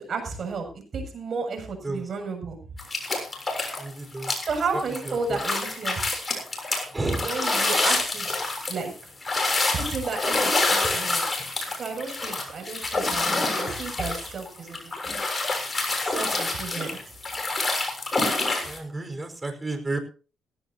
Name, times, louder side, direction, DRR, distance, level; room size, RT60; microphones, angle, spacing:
voice 1, 0.1-0.7 0.9-2.6 4.4-6.0 7.2-8.3 8.7-8.9 9.7-11.2 11.7-15.1 16.0-17.0, right 4 dB, 50° right, 4 dB, 7.1 m, -32 dB
sound 1, 2.8-3.9 4.2-18.8, left 2 dB, 25° left, 6.9 m, -27 dB
voice 2, 3.8-4.3 5.0-5.4 6.9-7.3 18.6-20.0, right 2 dB, 20° right, 6 dB, 4.6 m, -31 dB
17.5 x 16.5 x 2.8 m, 0.37 s
cardioid pair, 90°, 0 cm